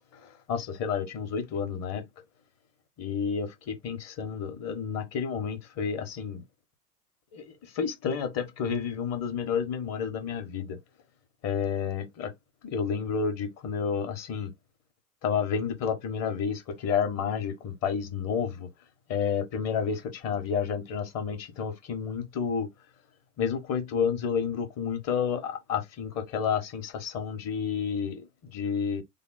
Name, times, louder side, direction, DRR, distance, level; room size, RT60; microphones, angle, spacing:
voice 1, 0.1-2.0 3.0-6.4 7.3-10.8 11.4-12.3 12.6-14.5 15.2-18.7 19.1-22.7 23.4-29.0, left 6 dB, 35° left, 1.1 m, -30 dB
3.4 x 2.2 x 4.0 m
hypercardioid pair, 110°, 47 cm